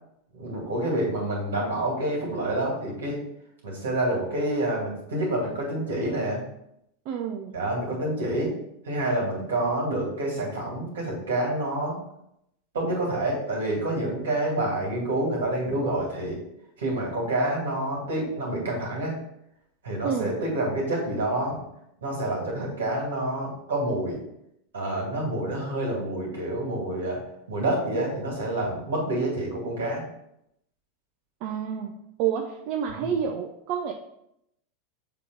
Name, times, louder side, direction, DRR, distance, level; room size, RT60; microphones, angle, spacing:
voice 1, 0.3-3.2 3.6-6.4 7.5-8.5 8.8-12.0 12.7-16.4 16.8-19.2 19.8-21.6 22.0-24.2 24.7-27.2 27.5-30.0 32.9-33.1, right 1 dB, 75° right, -1 dB, 2.3 m, -28 dB
voice 2, 7.1-7.6 20.0-20.4 31.4-31.9 32.2-33.9, right 8 dB, 55° right, 3 dB, 0.6 m, -29 dB
6.9 x 3.1 x 4.5 m, 0.79 s
hypercardioid pair, 90°, 0 cm